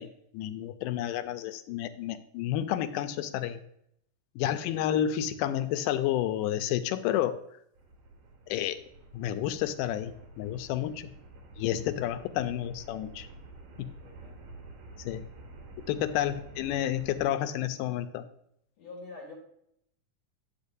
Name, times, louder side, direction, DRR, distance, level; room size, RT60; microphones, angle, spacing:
voice 1, 0.0-3.6 4.4-7.4 8.5-8.8 9.1-11.1 11.6-13.3 13.8-13.9 15.1-15.3 15.9-18.2, left 11 dB, 85° left, 10 dB, 2.1 m, -30 dB
voice 2, 4.4-4.8 11.8-12.0 14.0-14.4 16.4-16.5 18.8-19.3, left 3 dB, 60° left, -1 dB, 2.4 m, -48 dB
sound 1, 7.8-17.2, right 2 dB, 85° right, 3.0 m, -49 dB
10.0 x 6.7 x 2.6 m, 0.73 s
omnidirectional pair, 3.8 m